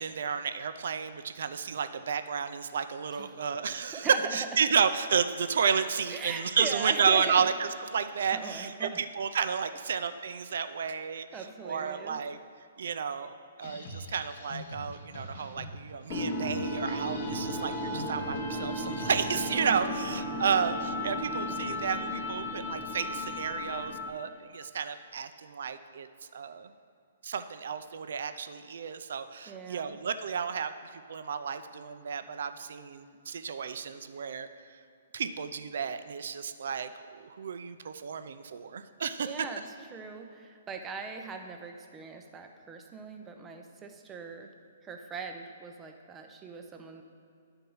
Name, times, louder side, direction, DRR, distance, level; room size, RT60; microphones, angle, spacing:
voice 1, 0.0-12.4 12.8-13.3 13.6-26.7 27.2-34.8 35.1-39.3, right 6 dB, 65° right, 10 dB, 0.5 m, -32 dB
voice 2, 6.1-7.4 8.3-9.0 11.3-12.2 19.6-20.0 29.5-30.0 39.2-39.6 39.9-44.5 44.8-47.0, right 5 dB, 15° right, 4 dB, 0.6 m, -40 dB
sound 1, 13.6-19.9, left 1 dB, 60° left, 1.3 m, -45 dB
sound 2, 16.1-24.3, left 1 dB, 20° left, 0.8 m, -34 dB
10.5 x 4.5 x 5.5 m, 2.4 s
hypercardioid pair, 165°, 0 cm